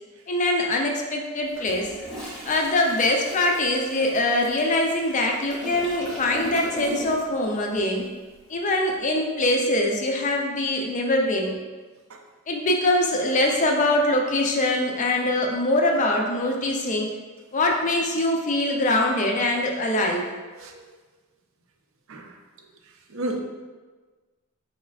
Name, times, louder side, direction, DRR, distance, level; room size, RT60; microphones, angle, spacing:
voice 1, 0.3-1.9 2.4-8.1 8.5-11.5 12.5-17.1 17.5-20.3, left 1 dB, 35° left, 1 dB, 0.4 m, -23 dB
Toilet flush, 1.5-7.4 7.7-8.0, equal, 5° left, 0.7 m, -37 dB
voice 2, 20.6-20.8 22.1-22.3 23.1-23.4, right 1 dB, 65° right, 2 dB, 0.5 m, -31 dB
4.2 x 3.2 x 2.3 m, 1.3 s
head